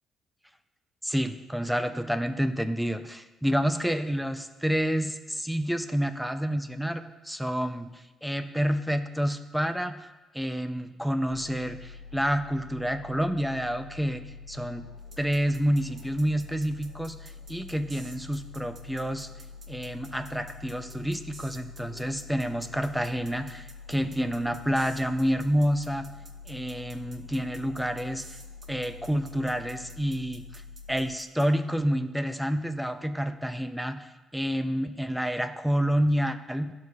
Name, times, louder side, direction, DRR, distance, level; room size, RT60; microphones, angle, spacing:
voice 1, 1.0-10.1 10.3-14.9 15.2-19.3 19.7-26.1 26.5-28.2 28.7-30.6 30.9-36.7, equal, ahead, 9 dB, 0.5 m, -29 dB
sound 1, 11.3-31.2, left 5 dB, 80° left, 0.9 m, -46 dB
sound 2, 15.1-31.5, right 4 dB, 50° right, 0.7 m, -51 dB
11.5 x 4.6 x 2.4 m, 1.2 s
cardioid pair, 85°, 0 cm